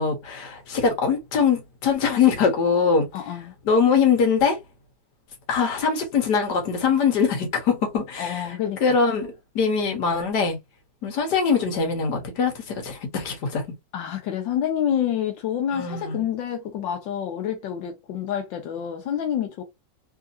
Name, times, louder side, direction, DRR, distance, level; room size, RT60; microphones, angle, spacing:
voice 1, 0.0-3.1 3.7-4.6 5.5-8.6 8.8-10.6 11.0-13.6 15.7-16.3, left 5 dB, 65° left, 1.7 m, -22 dB
voice 2, 3.1-3.5 8.2-9.0 13.9-19.6, left 9 dB, 85° left, 1.4 m, -28 dB
3.6 x 2.7 x 2.5 m
omnidirectional pair, 2.0 m